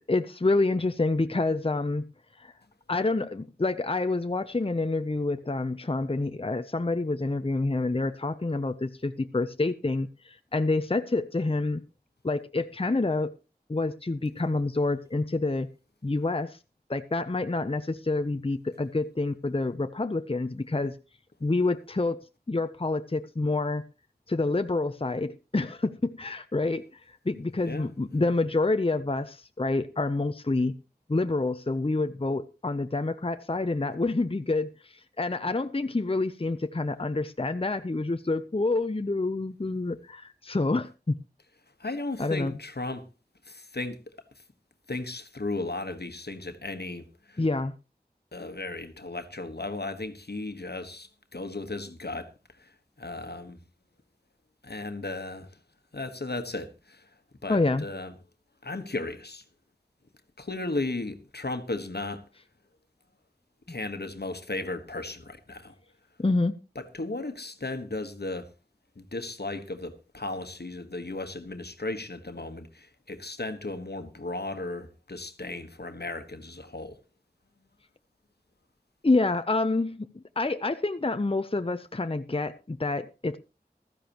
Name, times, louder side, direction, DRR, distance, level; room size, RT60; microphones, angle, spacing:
voice 1, 0.1-2.1 2.4-2.5 2.9-11.8 12.2-13.4 13.7-15.7 16.0-16.6 16.9-21.0 21.4-22.2 22.5-23.8 24.3-30.7 31.1-41.2 42.2-42.5 47.4-47.7 57.5-57.8 66.2-66.5 79.0-83.4, left 2 dB, 35° left, 0.6 m, -28 dB
voice 2, 27.6-27.9 28.2-28.3 41.8-43.1 43.5-44.0 44.9-47.4 48.3-52.3 52.6-52.7 53.0-53.6 54.6-55.5 55.9-57.1 57.4-58.1 58.6-59.4 60.4-62.2 63.7-65.7 66.7-68.5 69.0-77.0, left 2 dB, 75° left, 1.3 m, -35 dB
15.5 x 13.5 x 3.0 m
wide cardioid pair, 40°, 17 cm